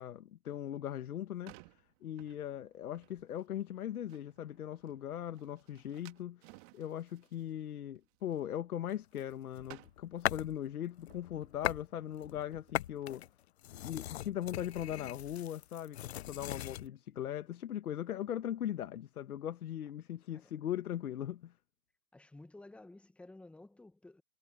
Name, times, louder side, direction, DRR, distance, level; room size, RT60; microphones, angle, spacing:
voice 1, 0.0-1.6 2.0-13.2 13.8-21.5, left 11 dB, 65° left, 1.5 m, -39 dB
sound 1, 1.0-9.4 9.6-13.3, right 27 dB, 30° right, 1.9 m, -61 dB
sound 2, 9.2-10.6 11.0-11.9 12.2-16.9, left 13 dB, 45° left, 0.6 m, -40 dB
voice 2, 22.1-24.2, left 2 dB, ahead, 1.2 m, -54 dB
hypercardioid pair, 135°, 47 cm